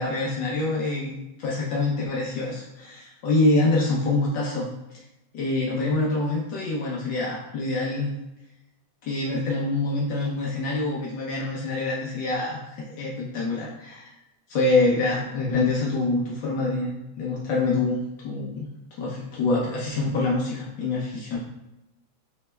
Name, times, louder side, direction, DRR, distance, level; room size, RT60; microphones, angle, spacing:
voice 1, 0.0-4.7 5.3-8.1 9.0-14.1 14.5-18.7 19.0-21.4, left 2 dB, 70° left, -4 dB, 1.4 m, -25 dB
7.1 x 3.3 x 2.2 m, 0.94 s
omnidirectional pair, 2.2 m